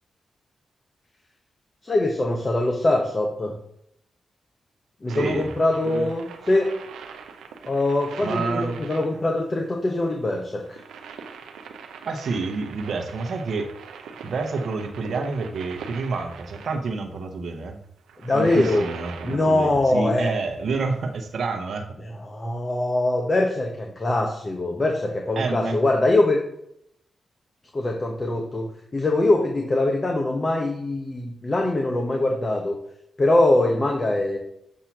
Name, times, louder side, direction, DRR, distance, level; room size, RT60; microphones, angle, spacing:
voice 1, 1.8-3.5 5.0-6.7 7.6-10.8 18.2-18.9 19.2-20.3 22.0-26.4 27.7-28.7 28.9-32.7 33.2-34.4, left 2 dB, 40° left, 2 dB, 1.0 m, -23 dB
voice 2, 5.1-5.5 5.8-6.1 8.2-8.8 12.0-13.7 14.2-17.8 18.3-21.9 25.4-25.8, right 4 dB, 70° right, 3 dB, 0.9 m, -28 dB
sound 1, 5.1-16.9 18.0-19.8 21.4-21.5, right 6 dB, 85° right, 0.6 m, -42 dB
7.2 x 2.9 x 5.9 m, 0.76 s
supercardioid pair, 40°, 0 cm